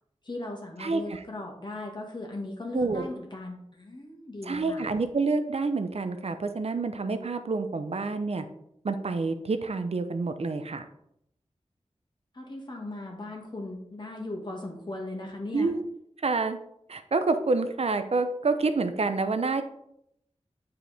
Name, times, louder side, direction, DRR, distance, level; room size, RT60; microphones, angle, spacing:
voice 1, 0.2-4.9 12.3-15.7, left 2 dB, 40° left, 0 dB, 1.9 m, -38 dB
voice 2, 0.8-1.2 2.7-3.1 4.4-8.4 8.8-10.8 15.5-15.9 16.2-16.6 16.9-19.6, right 3 dB, 60° right, 9 dB, 0.7 m, -28 dB
8.7 x 4.7 x 3.4 m, 0.76 s
wide cardioid pair, 65°, 12 cm